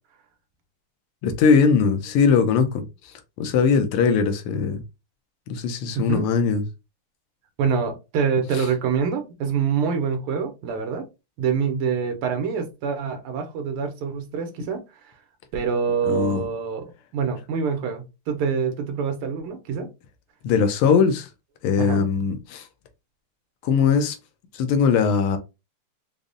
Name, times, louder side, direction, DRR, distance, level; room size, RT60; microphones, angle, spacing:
voice 1, 1.2-2.8 3.4-4.8 5.5-6.6 8.5-8.6 16.0-16.4 20.4-21.3 21.6-22.6 23.6-24.2 24.5-25.4, left 5 dB, 90° left, 1.5 m, -20 dB
voice 2, 5.9-6.3 7.6-11.1 11.4-15.1 15.5-16.9 17.1-19.9 21.8-22.1, right 6 dB, 85° right, 1.7 m, -26 dB
5.1 x 2.0 x 2.5 m
omnidirectional pair, 2.4 m